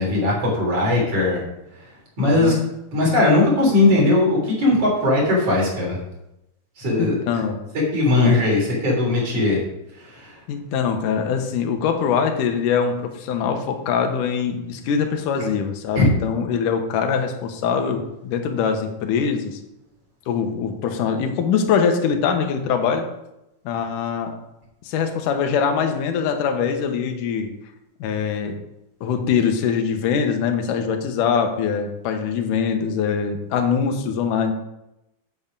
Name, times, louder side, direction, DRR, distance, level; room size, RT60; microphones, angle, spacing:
voice 1, 0.0-1.4 2.2-2.5 2.9-6.0 6.8-7.2 7.9-9.6 10.0-10.4 16.0-16.1, left 2 dB, 50° right, -3 dB, 4.5 m, -19 dB
voice 2, 2.2-2.5 7.0-7.6 8.2-8.4 10.5-19.6 20.3-23.1 23.7-24.3 24.9-27.5 28.0-28.6 29.0-34.5, left 6 dB, 80° left, 5 dB, 2.5 m, -23 dB
8.6 x 7.8 x 5.4 m, 0.88 s
omnidirectional pair, 3.7 m